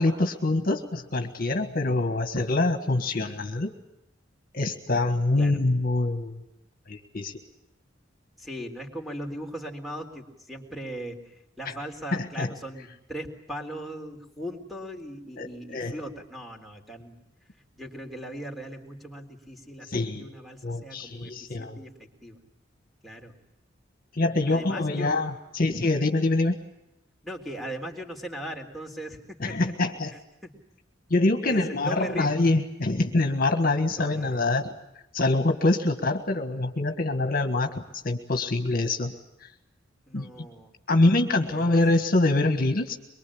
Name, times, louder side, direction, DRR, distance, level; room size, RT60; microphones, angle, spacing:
voice 1, 0.0-3.7 4.5-6.4 6.9-7.3 11.6-11.7 12.1-12.5 15.4-15.9 19.9-20.3 20.6-21.8 24.1-26.6 29.4-30.1 31.1-34.7 35.1-39.1 39.4-39.5 40.1-40.3 40.9-43.0, left 2 dB, 50° left, 7 dB, 1.6 m, -25 dB
voice 2, 8.4-17.2 17.8-21.3 21.6-22.4 23.0-23.3 24.5-25.1 25.6-25.7 27.2-29.6 30.4-30.5 31.4-32.3 34.0-34.4 40.1-41.1 41.5-41.8, right 1 dB, ahead, 3 dB, 3.7 m, -39 dB
23.5 x 23.5 x 8.6 m, 0.87 s
head